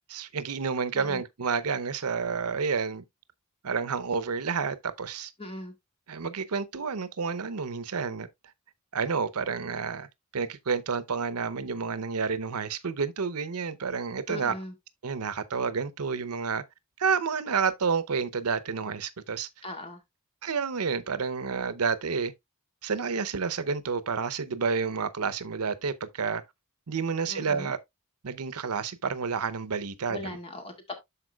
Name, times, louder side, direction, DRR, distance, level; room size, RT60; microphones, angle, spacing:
voice 1, 0.1-3.0 3.6-5.3 6.1-8.3 8.9-10.1 10.3-14.5 15.0-16.6 17.0-19.5 20.4-22.3 22.8-26.4 26.9-27.8 28.2-30.4, right 5 dB, 85° right, 0.7 m, -30 dB
voice 2, 5.4-5.7 14.3-14.7 19.6-20.0 27.3-27.7 30.1-30.9, left 2 dB, 25° left, 2.0 m, -39 dB
12.5 x 4.6 x 2.3 m
head